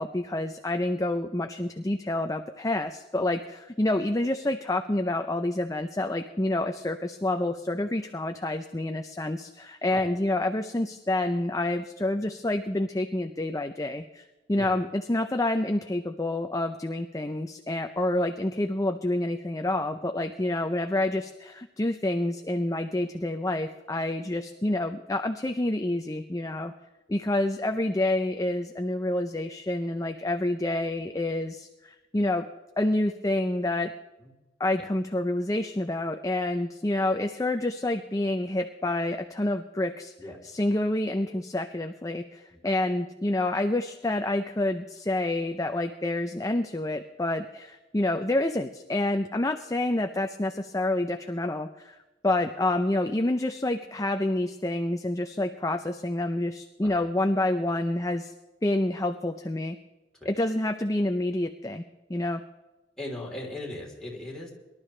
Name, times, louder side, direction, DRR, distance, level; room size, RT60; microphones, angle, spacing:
voice 1, 0.0-26.7 27.1-32.5 32.8-33.9 34.6-40.1 40.5-52.0 52.2-58.3 58.6-59.8 60.3-61.8 62.1-62.4, left 1 dB, 20° left, 6 dB, 0.6 m, -28 dB
voice 2, 63.0-64.5, left 1 dB, 5° left, -4 dB, 3.6 m, -39 dB
23.5 x 12.0 x 3.3 m, 1.1 s
head